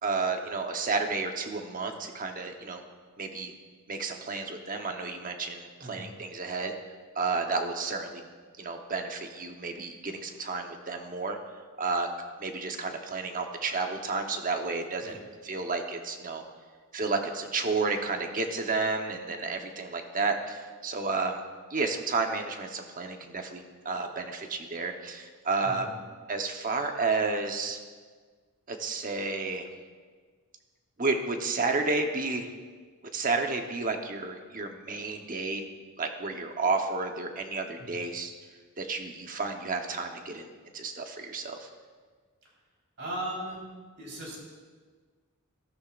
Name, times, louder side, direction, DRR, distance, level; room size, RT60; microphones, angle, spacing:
voice 1, 0.0-2.8 3.2-3.5 3.9-6.7 7.1-8.2 8.6-11.4 11.8-12.1 12.4-15.1 15.4-16.4 16.9-21.4 21.7-25.9 26.3-27.8 28.7-29.7 31.0-32.5 33.1-35.6 36.0-38.3 38.8-41.7, right 3 dB, 40° right, 4 dB, 1.0 m, -31 dB
voice 2, 43.0-43.7 44.0-44.4, right 1 dB, 55° right, -3 dB, 4.1 m, -37 dB
15.0 x 13.0 x 2.5 m, 1.5 s
head